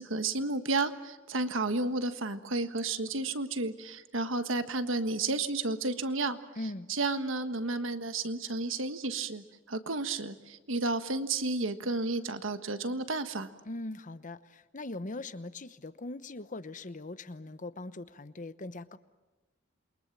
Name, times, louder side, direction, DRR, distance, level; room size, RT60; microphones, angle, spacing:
voice 1, 0.0-6.4 6.9-13.5, right 3 dB, 85° right, 9 dB, 1.5 m, -32 dB
voice 2, 6.6-6.9 13.6-19.0, left 2 dB, 40° left, 13 dB, 1.0 m, -41 dB
28.0 x 23.0 x 7.4 m, 1.2 s
head